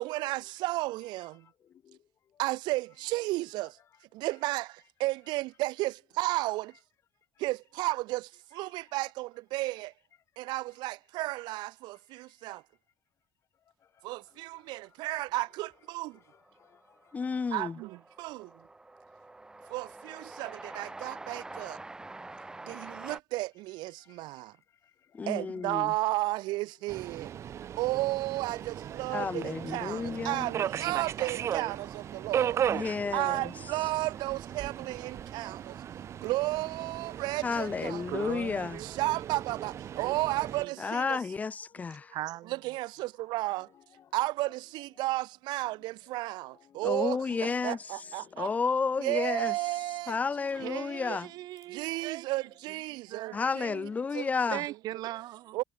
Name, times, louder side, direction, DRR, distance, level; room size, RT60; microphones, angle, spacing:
voice 1, 0.0-1.5 2.4-3.8 4.1-6.7 7.4-9.9 10.4-12.6 14.0-16.2 17.5-18.6 19.7-21.8 22.6-24.5 25.3-27.3 27.8-32.6 33.1-35.8 36.2-38.1 38.8-41.2 42.5-43.7 44.1-48.5 49.0-50.1 50.6-50.8 51.1-51.2 51.7-53.9 54.1-54.6 55.5-55.6, right 20 dB, 90° right, 1.3 m, -33 dB
voice 2, 1.6-2.0 14.1-14.2 15.0-15.1 16.6-17.3 24.0-24.5 24.8-25.2 41.7-42.2 44.0-44.1 46.2-46.8 48.2-48.5, left 9 dB, 40° left, 3.2 m, -62 dB
Train, 15.8-15.9 16.1-23.2, right 2 dB, 10° right, 4.0 m, -46 dB
voice 3, 17.1-17.8 25.1-25.9 29.1-30.5 32.7-33.5 37.4-38.8 40.8-42.1 46.8-47.8 48.4-49.5 50.1-51.3 53.3-54.6, left 5 dB, 20° left, 1.2 m, -31 dB
Subway metro underground, 26.9-40.7, right 9 dB, 40° right, 1.4 m, -37 dB
voice 4, 38.1-39.3 39.6-39.7 40.0-40.2 40.6-40.7 42.1-42.8 50.6-53.5 54.5-55.6, right 15 dB, 65° right, 2.1 m, -40 dB
cardioid pair, 165°, 7 cm